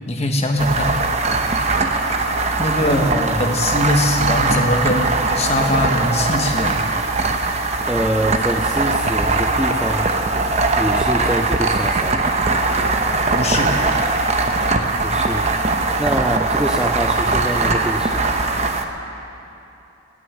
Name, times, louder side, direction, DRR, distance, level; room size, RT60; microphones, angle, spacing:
voice 1, 0.1-0.9 2.6-3.0 3.4-6.8 13.3-13.8, left 1 dB, 35° left, 3 dB, 1.2 m, -21 dB
sound 1, 0.6-18.8, right 3 dB, 35° right, 0.8 m, -20 dB
voice 2, 2.8-3.5 7.9-10.1 10.8-12.2 15.0-15.5 16.0-18.2, equal, 5° right, 4 dB, 0.4 m, -24 dB
19.5 x 6.7 x 8.9 m, 2.8 s
head